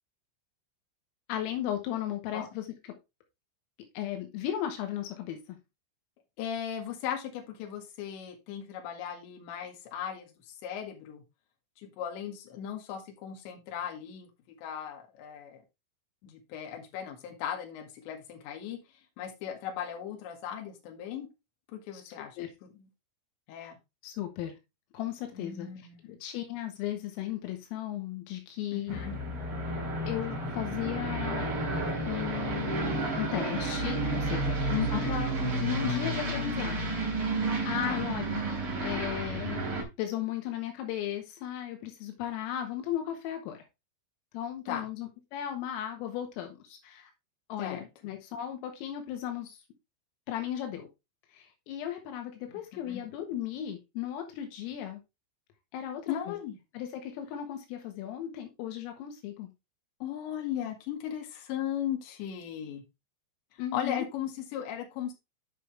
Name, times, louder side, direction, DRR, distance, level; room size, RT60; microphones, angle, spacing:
voice 1, 1.3-2.7 4.0-5.6 21.9-22.0 22.4-22.5 24.0-24.5 24.9-25.7 26.1-29.0 30.1-31.5 32.1-36.8 37.7-38.5 38.8-43.6 44.3-47.1 47.5-49.6 50.3-50.9 51.3-55.0 55.7-56.4 56.7-59.5 63.6-64.0, left 11 dB, 85° left, 4 dB, 4.1 m, -36 dB
voice 2, 6.4-11.2 11.8-14.3 14.6-15.6 16.2-18.8 19.2-21.3 21.7-22.9 23.5-23.8 25.3-26.2 28.7-29.1 34.7-35.2 37.8-38.1 44.7-44.9 47.6-47.9 52.5-52.6 52.9-53.0 56.1-56.6 60.0-62.8 63.7-65.1, left 9 dB, 65° left, 2 dB, 3.9 m, -37 dB
Aircraft, 28.9-39.8, right 2 dB, 30° right, 3.2 m, -31 dB
9.9 x 5.5 x 3.4 m, 0.24 s
omnidirectional pair, 5.9 m